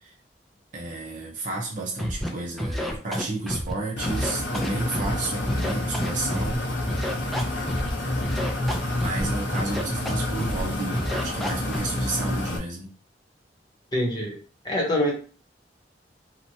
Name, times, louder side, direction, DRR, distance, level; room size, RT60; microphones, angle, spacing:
voice 1, 0.7-6.6 7.5-8.4 8.9-12.9, right 2 dB, 50° right, -2 dB, 0.6 m, -32 dB
Scratching (performance technique), 2.0-2.3 2.6-3.7 4.0-5.1 5.5-6.6 6.9-7.9 8.2-9.3 9.5-10.1 10.4-10.6 10.9-11.8, equal, ahead, 0.4 m, -29 dB
sound 1, 4.0-12.6, left 1 dB, 85° left, 0.7 m, -29 dB
voice 2, 13.9-14.4 14.6-15.1, left 1 dB, 25° left, -1 dB, 0.9 m, -24 dB
3.0 x 2.1 x 2.6 m, 0.38 s
head